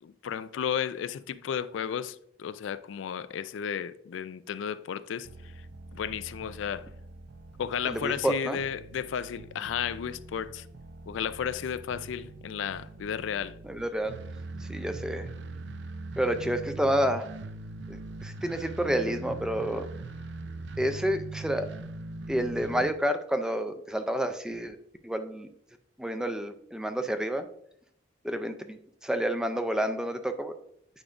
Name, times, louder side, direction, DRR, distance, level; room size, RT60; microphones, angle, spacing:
voice 1, 0.0-5.3 5.9-6.9 7.6-10.7 11.1-13.6, left 8 dB, 80° left, 0.3 m, -33 dB
sound 1, 5.2-22.9, right 3 dB, 65° right, 0.4 m, -42 dB
voice 2, 7.9-8.6 13.6-14.1 14.6-15.3 16.2-17.3 17.9-19.9 20.8-21.7 22.3-24.8 25.0-25.5 26.0-27.5 28.2-30.5, equal, 5° right, 0.4 m, -29 dB
8.8 x 4.9 x 2.5 m
head